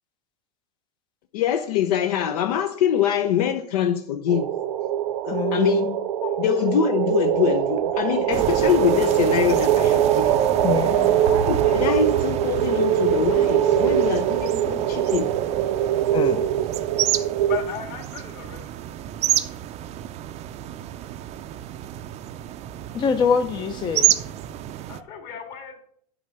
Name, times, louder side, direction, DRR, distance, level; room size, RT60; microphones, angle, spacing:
voice 1, 1.3-4.5 5.3-6.0 6.4-10.3 11.2-15.3, left 9 dB, 75° left, 8 dB, 0.7 m, -24 dB
sound 1, 4.3-17.6, right 11 dB, 70° right, 0.8 m, -22 dB
voice 2, 5.3-5.9 10.6-11.2 16.1-16.4 22.9-24.1, left 6 dB, 25° left, 8 dB, 0.5 m, -25 dB
sound 2, 8.3-25.0, right 12 dB, 35° right, 0.5 m, -30 dB
voice 3, 17.4-18.7 24.9-25.8, left 8 dB, 50° left, 4 dB, 2.0 m, -35 dB
8.6 x 4.0 x 6.7 m, 0.66 s
supercardioid pair, 125°, 20 cm